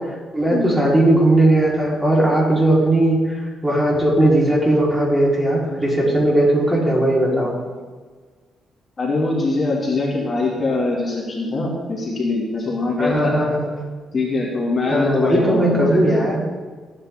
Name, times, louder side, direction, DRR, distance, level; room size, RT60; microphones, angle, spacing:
voice 1, 0.0-7.6 13.0-13.7 14.9-16.4, right 1 dB, 15° right, -5 dB, 4.1 m, -18 dB
voice 2, 9.0-13.3 14.1-16.2, left 3 dB, 35° left, -3 dB, 2.3 m, -23 dB
15.0 x 8.9 x 3.7 m, 1.4 s
cardioid pair, 90°, 0 cm